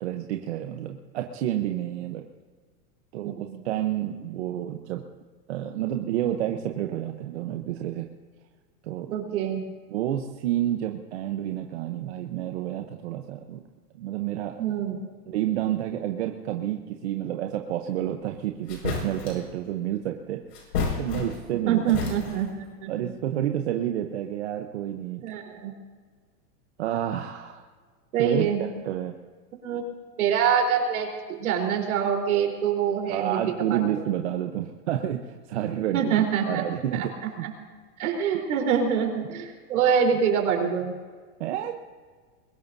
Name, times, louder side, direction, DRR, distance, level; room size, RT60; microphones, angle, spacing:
voice 1, 0.0-2.2 3.1-5.0 5.5-8.1 8.8-9.1 9.9-13.6 14.0-14.6 15.3-20.4 21.0-21.8 22.2-22.3 22.9-25.2 26.8-27.6 28.2-28.5 28.8-29.1 33.1-37.1 37.4-37.5 41.4-41.7, right 12 dB, 45° right, 4 dB, 0.9 m, -29 dB
voice 2, 9.1-9.6 14.6-15.0 21.7-22.5 22.8-23.1 25.2-25.7 28.1-28.6 29.6-29.8 30.2-33.4 33.7-34.0 35.9-36.6 36.9-37.1 37.4-37.5 38.0-40.9, right 7 dB, 65° right, 2 dB, 4.0 m, -25 dB
sound 1, 18.2-18.3 18.7-19.5 20.5-21.6 21.9-22.6, left 4 dB, 90° left, 5.8 m, -31 dB
22.5 x 20.0 x 2.7 m, 1.5 s
supercardioid pair, 175°, 46 cm